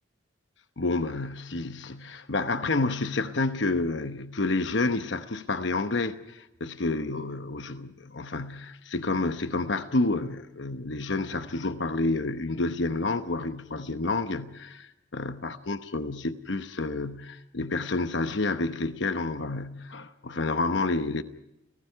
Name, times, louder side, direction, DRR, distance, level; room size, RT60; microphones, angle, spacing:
voice 1, 0.8-21.2, left 3 dB, 65° left, 1.0 m, -29 dB
30.0 x 17.5 x 5.7 m
head